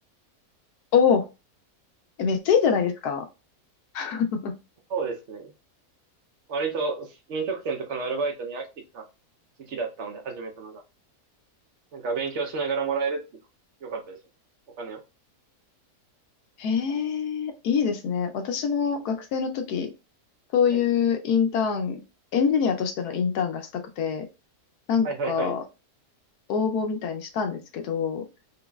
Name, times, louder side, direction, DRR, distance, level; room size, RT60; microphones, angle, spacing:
voice 1, 0.9-1.3 2.2-3.3 3.9-4.5 16.6-19.9 20.5-22.0 22.3-24.2 24.9-25.6 26.5-28.2, left 6 dB, 80° left, 6 dB, 1.2 m, -25 dB
voice 2, 4.9-5.5 6.5-8.7 8.9-9.0 9.6-10.8 11.9-13.2 13.8-14.2 14.8-15.0 20.7-20.8 25.0-25.5, right 4 dB, 55° right, 3 dB, 1.0 m, -30 dB
4.0 x 3.0 x 2.3 m, 0.27 s
omnidirectional pair, 1.6 m